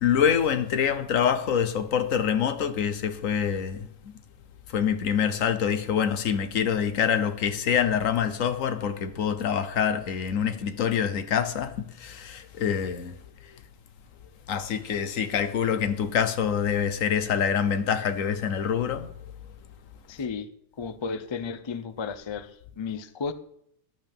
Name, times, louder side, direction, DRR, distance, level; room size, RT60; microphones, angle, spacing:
voice 1, 0.0-3.8 4.7-13.1 14.5-19.1, left 8 dB, 70° left, 1.2 m, -25 dB
voice 2, 20.1-20.5 20.8-23.3, left 5 dB, 40° left, 0.3 m, -33 dB
14.5 x 11.0 x 3.5 m
omnidirectional pair, 1.5 m